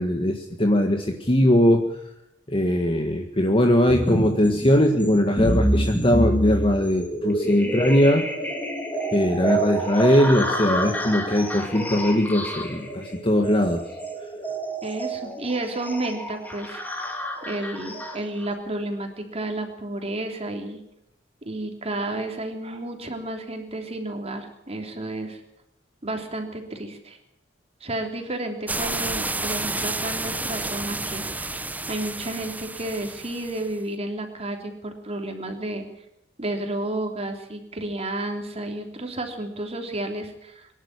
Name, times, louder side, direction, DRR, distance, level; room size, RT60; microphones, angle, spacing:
voice 1, 0.0-1.9 2.5-8.2 9.1-13.8, left 1 dB, 30° left, 4 dB, 1.7 m, -20 dB
sound 1, 3.9-18.5, right 1 dB, 10° left, 3.2 m, -28 dB
voice 2, 7.6-7.9 14.8-17.0 17.4-20.8 21.4-25.4 26.0-27.2 27.8-31.5 31.9-35.9 36.4-40.7, right 2 dB, 35° right, 4 dB, 3.3 m, -31 dB
sound 2, 28.7-33.7, right 2 dB, 10° right, 0.7 m, -30 dB
23.5 x 11.5 x 9.7 m, 0.83 s
head